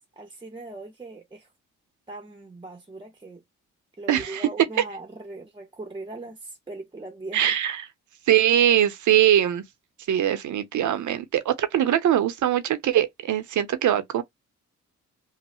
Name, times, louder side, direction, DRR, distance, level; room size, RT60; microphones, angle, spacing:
voice 1, 0.2-1.5 2.1-3.4 4.0-7.6, right 2 dB, 15° right, 0.7 m, -40 dB
voice 2, 4.1-4.5 7.3-7.9 8.3-9.6 10.1-14.2, right 11 dB, 70° right, 0.7 m, -22 dB
3.1 x 2.1 x 3.0 m
cardioid pair, 60°, 31 cm